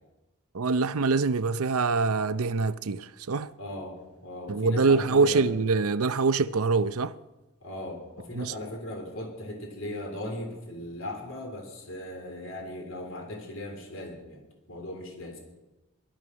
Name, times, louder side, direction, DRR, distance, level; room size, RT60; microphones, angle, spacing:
voice 1, 0.5-3.5 4.5-7.1 8.3-8.5, right 4 dB, 75° right, 0.6 m, -24 dB
voice 2, 3.6-5.5 7.6-14.4 14.7-15.4, left 1 dB, 60° left, 3.3 m, -38 dB
18.5 x 12.5 x 6.3 m
head